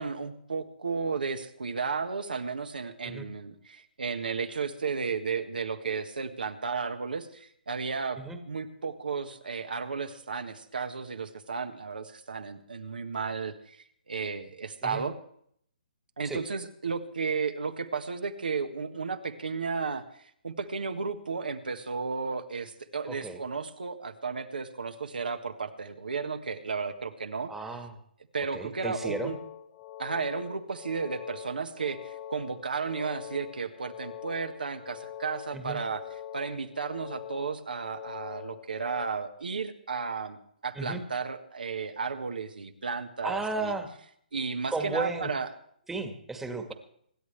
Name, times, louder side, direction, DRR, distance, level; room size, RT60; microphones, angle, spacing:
voice 1, 0.0-8.2 8.5-13.8 14.1-15.1 16.2-20.0 20.4-27.5 28.3-29.4 30.0-36.0 36.3-40.4 40.6-43.7 44.3-45.5, right 5 dB, 80° right, 7 dB, 1.5 m, -33 dB
voice 2, 23.1-23.4 27.5-28.0 28.5-29.4 35.5-35.8 40.7-41.0 43.2-43.9 44.7-45.3 45.9-46.7, right 3 dB, 5° right, 5 dB, 1.5 m, -34 dB
sound 1, 28.6-39.1, left 10 dB, 40° left, 1.6 m, -44 dB
26.0 x 11.0 x 3.3 m, 0.66 s
hypercardioid pair, 140°, 5 cm